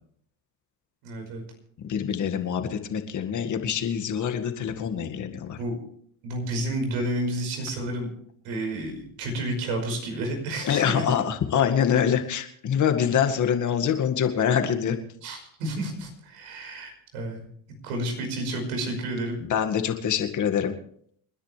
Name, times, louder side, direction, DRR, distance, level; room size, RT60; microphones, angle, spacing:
voice 1, 1.0-1.4 5.6-5.8 6.2-8.1 8.4-11.0 15.2-17.5 17.8-19.4, right 1 dB, 85° right, 3 dB, 5.3 m, -30 dB
voice 2, 1.9-5.6 10.6-15.0 19.4-20.7, left 8 dB, 50° left, 6 dB, 2.1 m, -25 dB
29.0 x 10.0 x 3.4 m, 0.64 s
supercardioid pair, 90°, 37 cm